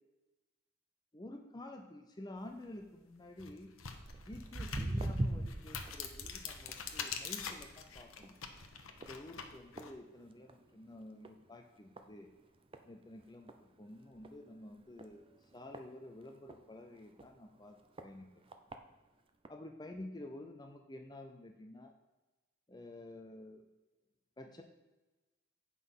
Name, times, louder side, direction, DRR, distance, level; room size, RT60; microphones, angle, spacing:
voice 1, 1.1-3.7 4.3-8.3 9.0-12.3 12.9-18.3 19.5-21.9 22.7-23.7 24.4-24.6, left 1 dB, 20° left, 4 dB, 0.6 m, -50 dB
sound 1, 2.6-2.7 3.3-9.9, left 7 dB, 80° left, 0.9 m, -45 dB
Walk footsteps, 4.1-10.7 11.0-11.4 12.0-12.1 12.7-12.8 13.2-13.3 13.5-13.6 14.2-14.3 15.0-16.6 17.2-17.3 18.0-18.1 18.5-18.8 19.4-19.5, right 1 dB, 25° right, 0.5 m, -41 dB
8.4 x 5.5 x 5.6 m, 1.1 s
head